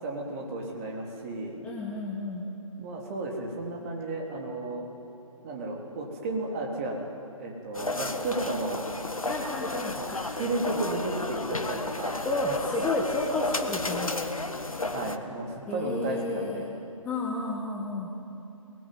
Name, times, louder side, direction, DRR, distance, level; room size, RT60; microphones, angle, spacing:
voice 1, 0.0-1.6 2.8-4.9 5.4-7.0 7.4-8.9 9.9-12.4 14.9-16.7, right 2 dB, 25° right, 0 dB, 3.6 m, -33 dB
voice 2, 1.6-2.4 9.2-10.2 10.7-10.8 12.2-14.3 15.7-16.6 17.0-18.1, left 2 dB, 5° left, -2 dB, 1.6 m, -31 dB
sound 1, 7.7-15.2, left 2 dB, 80° left, 1.6 m, -33 dB
23.5 x 20.0 x 9.5 m, 2.7 s
figure-of-eight pair, 145°, 18 cm